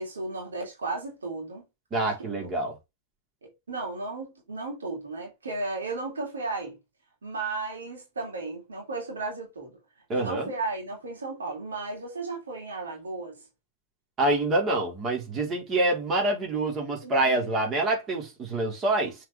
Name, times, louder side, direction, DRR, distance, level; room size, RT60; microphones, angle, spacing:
voice 1, 0.0-1.6 1.9-2.5 3.4-6.8 7.2-9.8 10.1-13.4 17.0-17.5, right 3 dB, 70° right, 3.3 m, -35 dB
voice 2, 1.9-2.7 10.1-10.5 14.2-19.1, right 2 dB, 25° right, 4.0 m, -26 dB
7.3 x 5.0 x 3.5 m
figure-of-eight pair, 90°, 0 cm